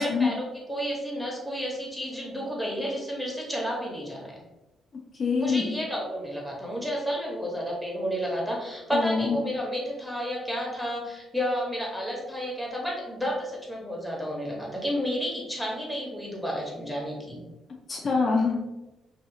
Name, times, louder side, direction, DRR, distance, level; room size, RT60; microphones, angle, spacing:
voice 1, 0.0-4.3 5.4-17.4, equal, ahead, -3 dB, 1.0 m, -31 dB
voice 2, 5.2-5.7 8.9-9.4 17.9-18.6, left 4 dB, 40° left, -2 dB, 0.4 m, -25 dB
2.7 x 2.3 x 2.7 m, 1.0 s
cardioid pair, 90°, 0 cm